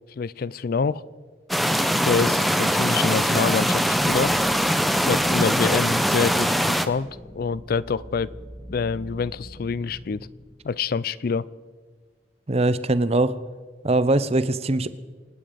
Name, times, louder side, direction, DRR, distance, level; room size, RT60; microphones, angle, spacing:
voice 1, 0.2-1.0 2.0-4.3 5.1-7.1 7.4-8.3 8.7-10.2 10.6-11.5, left 5 dB, 50° left, 19 dB, 0.4 m, -26 dB
sound 1, 1.5-6.9, equal, ahead, 0.7 m, -22 dB
sound 2, 4.0-10.6, equal, 15° right, 1.7 m, -43 dB
voice 2, 12.5-13.3 13.8-14.9, right 2 dB, 35° right, 14 dB, 0.7 m, -21 dB
26.5 x 9.3 x 5.1 m, 1.5 s
head